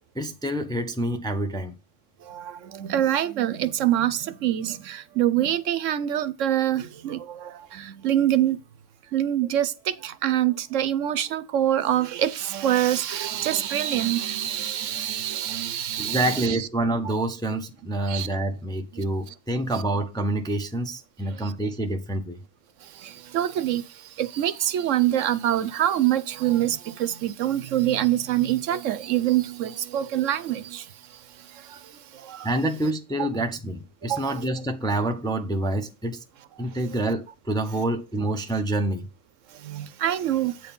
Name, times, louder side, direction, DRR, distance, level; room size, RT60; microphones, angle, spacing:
voice 1, 0.2-1.7 16.0-22.4 32.4-36.2 36.6-39.1, right 1 dB, 5° left, 0.6 m, -27 dB
voice 2, 2.3-8.6 9.1-16.7 17.0-17.1 18.1-18.3 23.3-23.8 24.2-30.8 32.3-32.5 33.2-33.3 34.1-34.3 39.7-40.5, right 12 dB, 75° right, 1.0 m, -25 dB
8.6 x 4.5 x 5.4 m
omnidirectional pair, 1.3 m